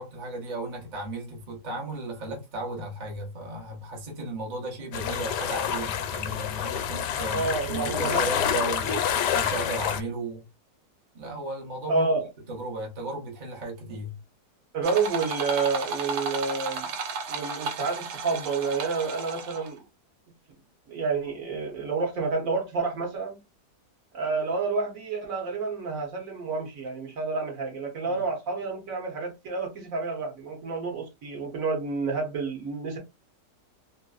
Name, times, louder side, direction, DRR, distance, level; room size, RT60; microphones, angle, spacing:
voice 1, 0.0-9.0 9.3-10.4 11.1-12.1 12.5-14.1 28.0-28.2, right 1 dB, 35° right, 0.8 m, -35 dB
sound 1, 4.9-10.0, left 9 dB, 85° left, 1.2 m, -28 dB
voice 2, 7.3-8.3 8.8-9.0 11.9-12.3 14.7-16.9 17.3-19.8 20.9-23.4 24.1-33.0, right 4 dB, 60° right, 1.3 m, -29 dB
sound 2, 14.8-19.8, right 4 dB, 90° right, 1.3 m, -34 dB
3.1 x 2.5 x 2.3 m
omnidirectional pair, 1.7 m